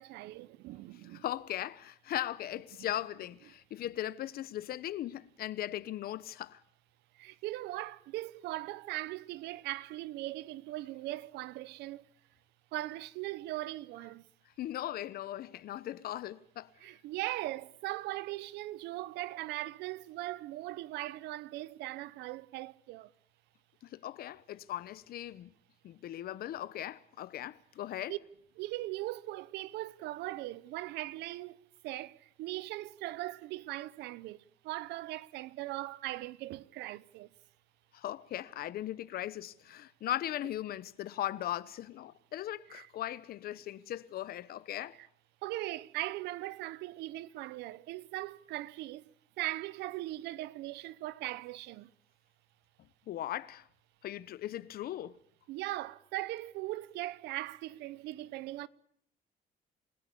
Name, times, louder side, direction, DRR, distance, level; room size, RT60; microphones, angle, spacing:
voice 1, 0.0-1.2 7.2-12.1 12.7-14.2 16.8-23.1 28.1-28.2 28.6-37.3 42.7-42.9 45.0-45.1 45.4-49.0 49.4-51.9 55.5-58.7, right 17 dB, 85° right, 0.9 m, -39 dB
voice 2, 1.1-6.6 14.6-16.7 23.8-25.5 25.8-28.2 37.9-45.0 53.1-53.7 54.0-55.2, left 13 dB, 65° left, 1.0 m, -38 dB
28.5 x 17.0 x 8.6 m
cardioid pair, 110°, 17 cm